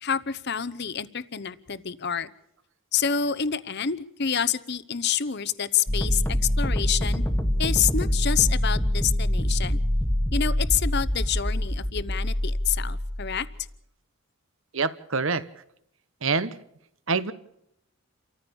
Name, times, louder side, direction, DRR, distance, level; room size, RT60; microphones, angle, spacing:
voice 1, 0.0-2.3 2.9-6.2 6.6-7.2 7.6-9.8 10.3-13.5, left 8 dB, 50° left, 15 dB, 0.9 m, -27 dB
sound 1, 5.9-13.6, left 1 dB, 10° left, 1.4 m, -25 dB
voice 2, 14.7-15.4 16.2-16.5 17.1-17.3, right 4 dB, 60° right, 15 dB, 1.1 m, -25 dB
29.0 x 14.5 x 7.1 m, 0.76 s
head